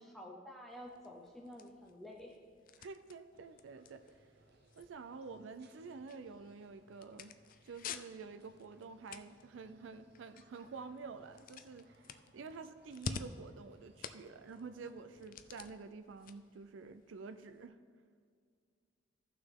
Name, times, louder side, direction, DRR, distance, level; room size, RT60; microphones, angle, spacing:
voice 1, 0.0-2.4 12.3-12.4, left 1 dB, ahead, -1 dB, 0.6 m, -50 dB
sound 1, 0.7-17.7, left 5 dB, 45° left, 0.4 m, -51 dB
voice 2, 2.8-4.0 4.8-7.3 7.6-17.8, right 4 dB, 85° right, 9 dB, 0.4 m, -49 dB
sound 2, 3.3-15.7, right 2 dB, 60° right, 0.7 m, -68 dB
14.5 x 5.9 x 3.7 m, 2.2 s
head